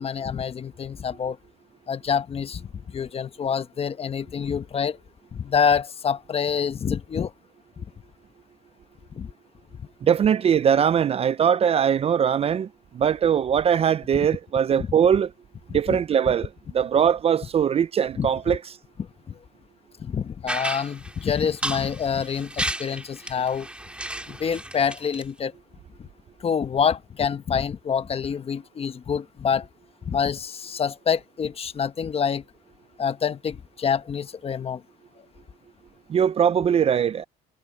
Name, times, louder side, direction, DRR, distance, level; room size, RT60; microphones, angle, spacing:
voice 1, 0.0-1.4 1.9-5.0 5.3-7.3 9.2-9.3 14.1-14.3 14.8-14.9 15.7-16.0 18.2-18.6 19.0-19.1 20.0-23.7 24.3-25.5 26.4-29.7 30.1-32.4 33.0-34.8, left 7 dB, 35° left, 1.1 m, -26 dB
voice 2, 10.0-12.7 12.9-15.3 15.7-18.6 36.1-37.2, right 8 dB, 35° right, 0.4 m, -21 dB
sound 1, 20.5-25.2, right 1 dB, 5° right, 2.7 m, -33 dB
cardioid pair, 110°, 17 cm